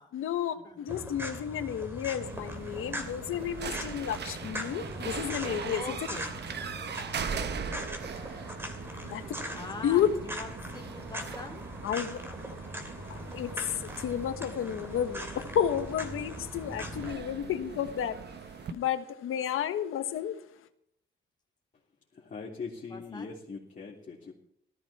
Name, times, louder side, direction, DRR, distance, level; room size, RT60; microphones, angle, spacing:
voice 1, 0.1-5.9 7.3-7.5 9.0-9.2 9.8-10.1 11.8-12.2 13.1-18.1 18.7-20.3, left 9 dB, 90° left, 1.4 m, -31 dB
sound 1, 0.9-17.1, equal, 10° right, 2.8 m, -41 dB
sound 2, 2.2-18.7, right 6 dB, 55° right, 1.1 m, -40 dB
voice 2, 5.7-6.3 9.5-11.6 22.9-23.4, left 3 dB, 20° left, 2.6 m, -43 dB
voice 3, 22.2-24.3, left 4 dB, 40° left, 3.3 m, -41 dB
18.0 x 14.0 x 4.3 m
cardioid pair, 135°, 21 cm